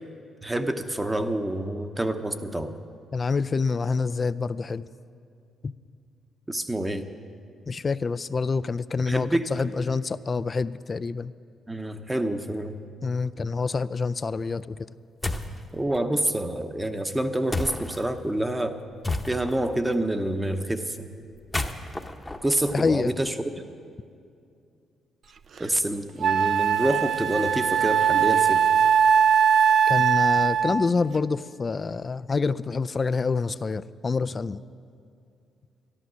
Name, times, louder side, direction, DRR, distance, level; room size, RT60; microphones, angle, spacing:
voice 1, 0.4-2.8 6.5-7.0 9.1-9.5 11.7-12.8 15.7-18.8 19.3-21.1 22.4-23.3 25.6-28.6, right 1 dB, 15° right, 8 dB, 0.9 m, -27 dB
voice 2, 3.1-4.8 5.6-5.7 7.7-11.3 13.0-14.9 22.7-23.1 29.9-34.6, left 4 dB, 40° left, 15 dB, 0.4 m, -27 dB
sound 1, 15.2-15.6 17.5-18.0 19.0-19.7 21.3-23.3, left 2 dB, 15° left, 0.9 m, -31 dB
Wind instrument woodwind instrument, 25.6-25.7 26.2-30.9, right 8 dB, 60° right, 0.5 m, -20 dB
12.5 x 12.0 x 6.3 m, 2.5 s
cardioid pair, 70°, 0 cm